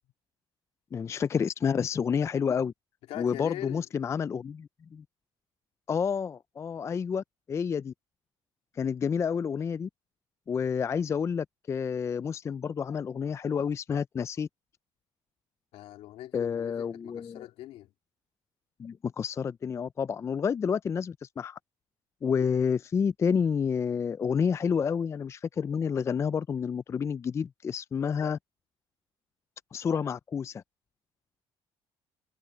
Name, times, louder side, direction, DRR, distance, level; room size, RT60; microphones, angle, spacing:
voice 1, 0.9-2.7 3.2-5.0 5.9-7.9 8.8-9.9 10.5-14.5 16.3-17.5 18.8-21.6 22.2-28.4 29.7-30.6, left 6 dB, 30° left, 0.3 m, -29 dB
voice 2, 3.1-3.9 15.7-17.9, left 14 dB, 80° left, 2.6 m, -42 dB
cardioid pair, 115°, 10 cm